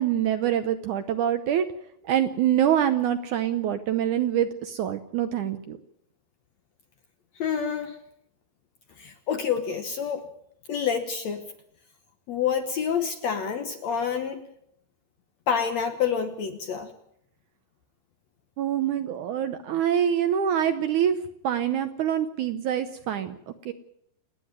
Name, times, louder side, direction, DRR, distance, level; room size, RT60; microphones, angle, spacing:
voice 1, 0.0-1.7 2.0-5.8 18.6-21.2 21.4-23.4 23.7-23.8, right 10 dB, 70° right, 9 dB, 2.0 m, -25 dB
voice 2, 7.4-8.0 9.0-10.2 10.7-11.4 12.3-14.5 15.5-16.9, left 7 dB, 65° left, 7 dB, 1.9 m, -28 dB
28.0 x 9.9 x 9.5 m, 0.75 s
omnidirectional pair, 4.3 m